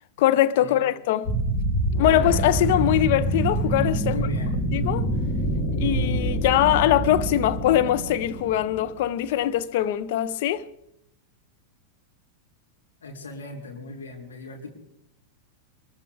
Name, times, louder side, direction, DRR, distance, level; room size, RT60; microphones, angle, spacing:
voice 1, 0.2-1.3 2.0-4.1 4.7-5.1 5.8-10.6, left 12 dB, 50° left, 0.7 m, -22 dB
sound 1, 1.2-9.0, right 1 dB, 30° left, 3.2 m, -26 dB
voice 2, 4.0-4.5 13.0-14.7, left 3 dB, 70° left, 3.7 m, -37 dB
23.0 x 14.5 x 3.5 m
figure-of-eight pair, 90°, 0 cm